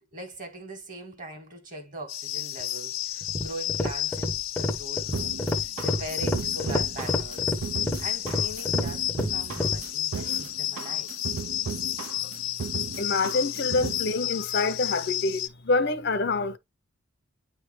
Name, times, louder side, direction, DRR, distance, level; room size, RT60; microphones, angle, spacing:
voice 1, 0.1-7.6 8.0-11.1, right 1 dB, 40° right, 1.7 m, -41 dB
sound 1, 2.1-15.5, left 12 dB, 90° left, 1.1 m, -32 dB
sound 2, 3.2-9.8, left 1 dB, 10° left, 0.6 m, -30 dB
sound 3, 5.1-14.1, right 6 dB, 80° right, 0.5 m, -36 dB
voice 2, 13.0-16.6, left 3 dB, 50° left, 0.6 m, -26 dB
9.3 x 3.2 x 3.1 m
head